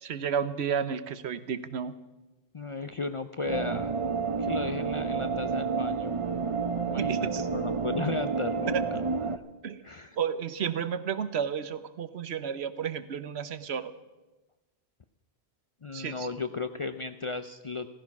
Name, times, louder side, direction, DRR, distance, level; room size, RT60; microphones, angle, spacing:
voice 1, 0.0-2.0 7.0-7.5 8.7-8.9 9.6-9.8 10.2-13.9 15.9-16.3, right 7 dB, 80° right, 13 dB, 1.1 m, -32 dB
voice 2, 2.5-3.9 4.4-6.2 6.9-9.0 9.8-10.2 15.8-17.9, left 3 dB, 40° left, 10 dB, 0.4 m, -35 dB
sound 1, 3.5-9.4, right 5 dB, 40° right, 0.5 m, -30 dB
15.5 x 15.0 x 5.9 m, 1.1 s
omnidirectional pair, 1.1 m